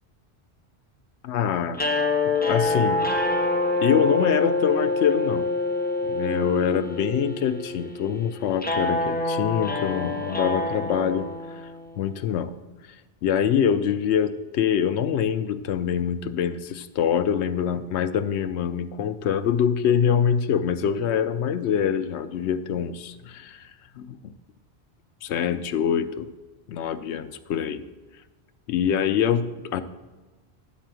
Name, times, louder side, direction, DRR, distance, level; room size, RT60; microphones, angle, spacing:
voice 1, 1.2-1.8 2.4-3.0 3.8-5.5 6.0-11.3 12.0-12.5 13.2-23.6 24.0-24.2 25.2-26.3 26.7-27.8 28.7-29.8, left 8 dB, 85° left, 11 dB, 0.9 m, -24 dB
sound 1, 1.7-12.0, left 2 dB, 10° left, 0.7 m, -26 dB
10.5 x 4.2 x 7.6 m, 1.2 s
omnidirectional pair, 1.1 m